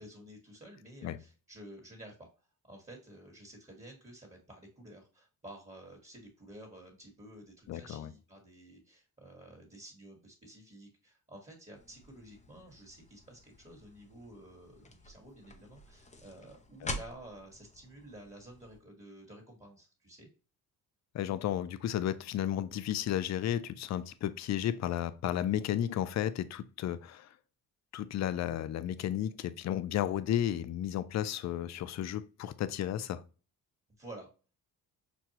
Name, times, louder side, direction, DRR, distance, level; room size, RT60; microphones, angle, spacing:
voice 1, 0.0-20.3 34.0-34.3, right 1 dB, 20° right, 1.4 m, -52 dB
voice 2, 7.7-8.1 16.8-17.0 21.1-27.3 27.9-33.2, left 11 dB, 50° left, 0.4 m, -33 dB
sound 1, 11.7-18.8, left 1 dB, 20° left, 0.7 m, -47 dB
6.0 x 2.2 x 2.8 m
cardioid pair, 85°, 37 cm